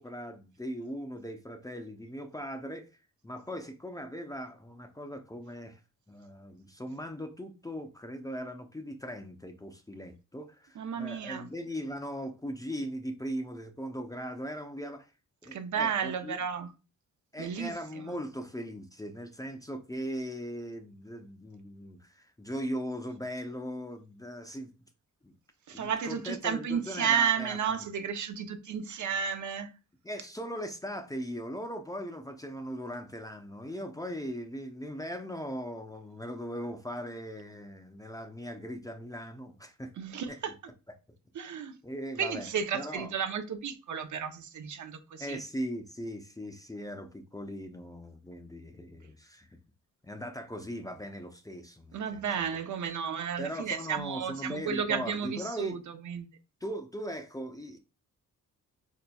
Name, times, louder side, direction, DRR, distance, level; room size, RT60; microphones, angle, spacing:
voice 1, 0.0-3.0 3.2-5.8 6.1-15.1 15.4-16.4 17.3-24.7 25.2-25.4 25.7-27.6 30.0-39.9 40.3-40.4 41.8-43.1 45.2-49.6 50.0-52.2 53.4-55.8 56.6-57.8, equal, 10° left, 0.4 m, -39 dB
voice 2, 10.8-11.5 15.5-16.7 17.4-17.7 25.7-29.7 40.0-40.5 41.3-41.7 42.2-45.4 51.9-55.8 56.0-56.3, right 7 dB, 60° right, 0.6 m, -32 dB
4.0 x 2.8 x 2.2 m
cardioid pair, 75°, 33 cm